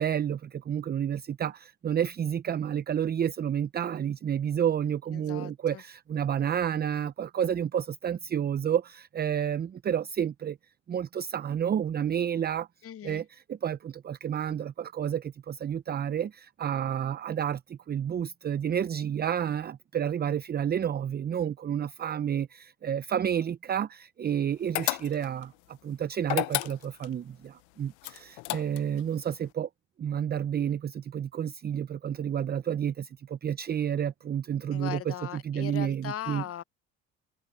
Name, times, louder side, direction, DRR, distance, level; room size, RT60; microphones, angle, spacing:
voice 1, 0.0-10.6 10.9-12.7 13.0-29.7 30.0-35.1 35.4-36.4, right 9 dB, 30° right, 0.6 m, -30 dB
voice 2, 5.1-5.8 12.8-13.2 34.7-36.6, left 11 dB, 45° left, 1.1 m, -38 dB
sound 1, 24.7-25.4 26.2-27.1 28.0-29.0, left 24 dB, 80° left, 0.8 m, -31 dB
supercardioid pair, 75°, 31 cm